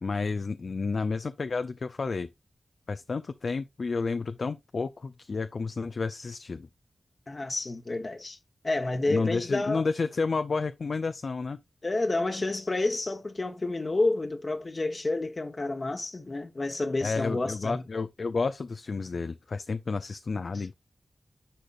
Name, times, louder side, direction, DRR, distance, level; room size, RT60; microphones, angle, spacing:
voice 1, 0.0-2.3 2.9-6.7 9.1-11.6 17.0-20.7, left 4 dB, 70° left, 0.5 m, -31 dB
voice 2, 7.3-8.4 8.6-9.8 11.8-17.8 20.5-20.7, left 2 dB, 50° left, 1.2 m, -29 dB
10.0 x 5.1 x 2.6 m
cardioid pair, 45°, 0 cm